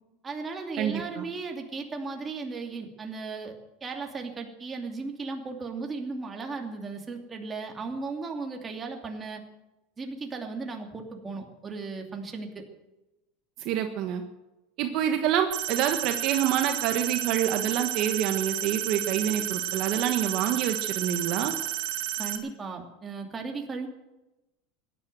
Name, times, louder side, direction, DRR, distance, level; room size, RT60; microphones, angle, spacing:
voice 1, 0.2-9.4 10.0-12.7 22.2-23.9, right 4 dB, 20° right, 2 dB, 2.7 m, -36 dB
voice 2, 0.8-1.2 13.6-14.2 14.8-21.5, right 10 dB, 50° right, 6 dB, 1.4 m, -27 dB
sound 1, 15.5-22.4, right 14 dB, 70° right, 2.9 m, -32 dB
16.5 x 11.0 x 7.9 m, 1.0 s
supercardioid pair, 140°, 0 cm